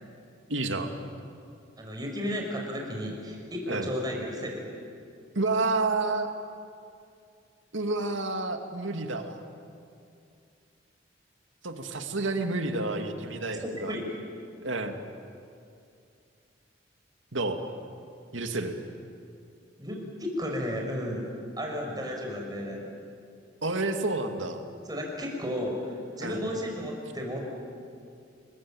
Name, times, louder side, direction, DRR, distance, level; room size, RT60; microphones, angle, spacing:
voice 1, 0.5-1.0 3.7-3.9 5.3-6.3 7.7-9.4 11.6-13.9 14.6-15.0 17.3-17.6 18.3-18.8 23.6-24.6 26.2-26.4, right 3 dB, 85° right, 5 dB, 2.4 m, -29 dB
voice 2, 1.8-4.7 13.6-14.0 19.8-21.3 21.6-22.9 24.9-27.4, equal, 20° right, 0 dB, 5.8 m, -33 dB
29.5 x 22.0 x 8.9 m, 2.5 s
head